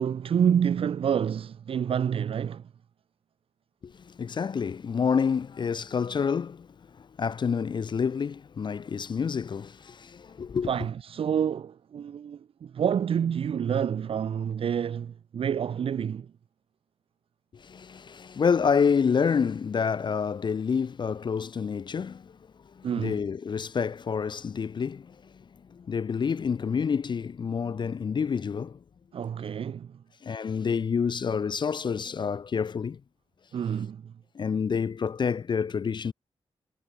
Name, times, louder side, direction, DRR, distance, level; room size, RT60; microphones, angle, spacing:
voice 1, 0.0-2.7 10.7-16.3 22.8-23.1 29.1-30.0 33.5-34.1, right 8 dB, 60° right, 0.4 m, -28 dB
voice 2, 3.8-6.7 7.0-10.7 17.5-22.4 22.8-25.3 25.7-28.8 30.2-33.0 34.3-36.1, left 6 dB, 45° left, 0.4 m, -28 dB
wide cardioid pair, 115°, 11 cm